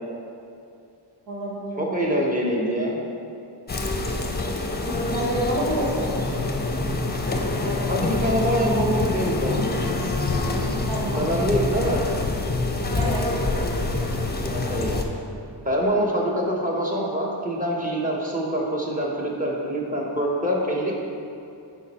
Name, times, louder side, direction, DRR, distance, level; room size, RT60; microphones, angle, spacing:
voice 1, 1.3-2.2 4.8-6.2 10.6-11.4 12.9-13.3, right 1 dB, 85° right, -5 dB, 1.3 m, -29 dB
voice 2, 1.8-3.0 7.6-9.7 11.1-12.0 14.4-15.0 15.6-20.9, equal, 20° right, -3 dB, 1.3 m, -25 dB
sound 1, 3.7-15.0, left 2 dB, 25° left, 0.7 m, -26 dB
10.5 x 4.5 x 4.4 m, 2.6 s
wide cardioid pair, 125°, 43 cm